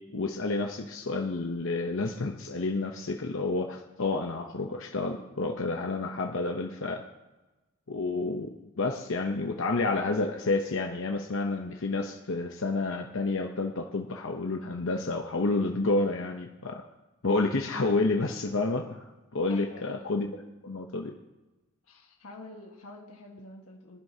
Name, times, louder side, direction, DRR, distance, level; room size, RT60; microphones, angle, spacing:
voice 1, 0.1-7.1 7.9-16.8 17.2-19.0 19.3-20.3 20.6-21.1, left 3 dB, 60° left, 3 dB, 0.8 m, -29 dB
voice 2, 19.5-20.1 21.8-24.0, left 2 dB, 75° left, 0 dB, 1.6 m, -47 dB
24.0 x 11.0 x 2.8 m, 1.1 s
head